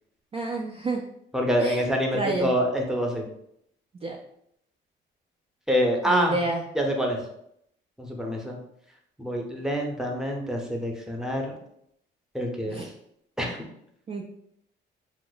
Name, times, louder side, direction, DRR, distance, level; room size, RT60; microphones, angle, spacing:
voice 1, 0.3-1.0 1.6-1.8 2.1-2.6 4.0-4.2 6.1-6.6 12.7-12.9 14.1-14.2, right 2 dB, 30° right, 0 dB, 0.4 m, -29 dB
voice 2, 1.3-3.3 5.7-6.4 6.7-7.2 8.0-8.6 9.2-11.5 12.3-12.9 13.4-13.6, equal, 5° right, 1 dB, 0.7 m, -26 dB
3.0 x 2.0 x 3.9 m, 0.73 s
cardioid pair, 90°, 20 cm